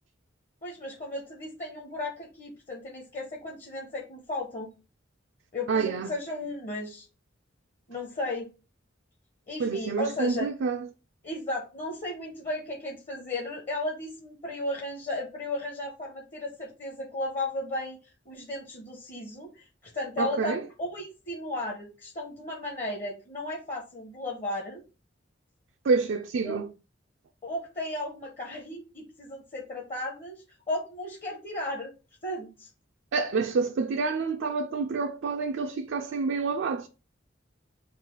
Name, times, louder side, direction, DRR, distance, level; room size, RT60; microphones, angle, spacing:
voice 1, 0.6-4.7 5.5-7.1 7.9-8.5 9.5-10.5 11.2-18.0 18.3-24.8 26.4-26.6 27.4-31.9 32.2-32.7, left 1 dB, 40° left, 0.8 m, -35 dB
voice 2, 5.7-6.1 9.6-10.9 20.2-20.6 25.8-26.7 33.1-36.9, right 4 dB, 75° right, 0.4 m, -28 dB
3.9 x 2.4 x 4.6 m
head